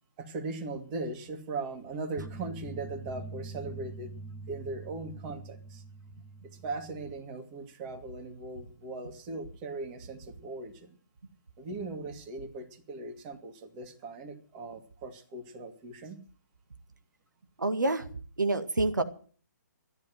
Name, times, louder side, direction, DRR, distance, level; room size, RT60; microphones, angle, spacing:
voice 1, 0.2-4.1 4.5-5.8 6.4-11.0 11.6-16.2, right 3 dB, 25° right, 5 dB, 2.6 m, -39 dB
sound 1, 2.2-7.2, right 2 dB, 10° left, 0.9 m, -44 dB
voice 2, 17.6-18.1 18.4-19.0, right 2 dB, 80° right, 9 dB, 1.8 m, -27 dB
14.0 x 11.0 x 7.8 m, 0.43 s
figure-of-eight pair, 140°, 10 cm